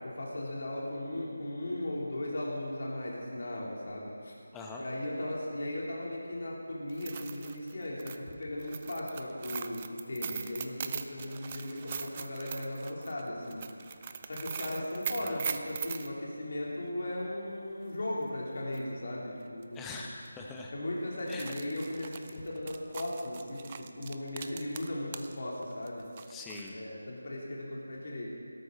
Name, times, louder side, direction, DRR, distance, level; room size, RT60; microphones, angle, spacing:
voice 1, 0.0-4.3 4.8-13.6 14.0-19.9 20.7-26.1 26.7-28.3, left 1 dB, 55° left, -4 dB, 3.6 m, -37 dB
sound 1, 6.9-16.1 18.2-18.3 18.7-18.8 19.6-19.8 20.1-20.3 21.1-25.3 25.6-26.7, right 7 dB, 30° right, 0.6 m, -41 dB
voice 2, 19.7-20.7 21.3-21.5 26.3-26.8, left 3 dB, 10° left, -1 dB, 1.1 m, -43 dB
17.5 x 13.0 x 4.1 m, 2.4 s
figure-of-eight pair, 160°, 0 cm